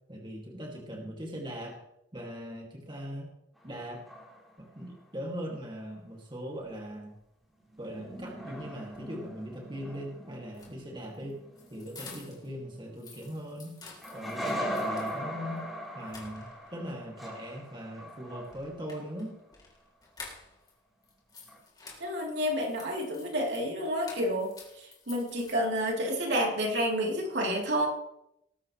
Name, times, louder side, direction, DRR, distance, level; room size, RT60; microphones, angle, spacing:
voice 1, 0.1-1.8 2.1-3.3 3.6-4.1 4.6-7.2 7.8-11.4 11.7-13.8 14.1-15.7 15.9-19.4, equal, 25° right, 0 dB, 2.3 m, -40 dB
sound 1, 3.6-4.8 7.6-13.4 14.0-19.1 21.5-21.6, equal, ahead, 4.2 m, -40 dB
sound 2, 10.5-12.5 12.8-15.2 15.6-15.7 16.0-16.8 18.4-20.7 21.0-26.0, left 4 dB, 25° left, 3.5 m, -51 dB
voice 2, 22.0-27.9, equal, 70° right, -1 dB, 3.3 m, -30 dB
19.5 x 11.5 x 3.2 m, 0.80 s
head